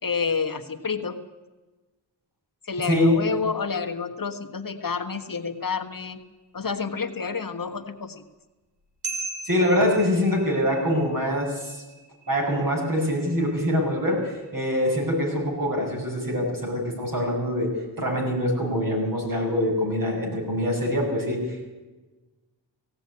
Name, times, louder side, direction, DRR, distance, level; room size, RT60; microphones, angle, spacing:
voice 1, 0.0-1.2 2.6-6.2 6.5-8.2, left 5 dB, 50° left, 5 dB, 1.4 m, -29 dB
voice 2, 2.9-3.2 9.4-11.8 12.3-17.7 18.0-21.7, equal, 50° right, -1 dB, 7.4 m, -24 dB
sound 1, 5.1-5.7 9.0-14.8, right 4 dB, 65° right, 3.8 m, -40 dB
17.5 x 17.0 x 9.7 m, 1.2 s
wide cardioid pair, 115°, 43 cm